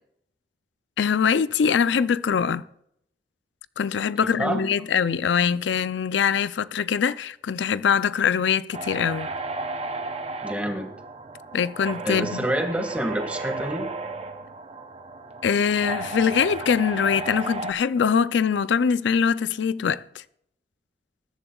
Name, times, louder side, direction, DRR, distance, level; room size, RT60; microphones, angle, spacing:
voice 1, 1.0-2.6 3.8-9.3 11.5-12.5 15.4-20.2, left 7 dB, 90° left, 0.4 m, -23 dB
sound 1, 8.7-17.7, right 3 dB, 35° right, 0.8 m, -34 dB
voice 2, 10.4-10.9 12.1-13.9, right 1 dB, 10° right, 1.9 m, -27 dB
21.0 x 10.5 x 2.3 m
head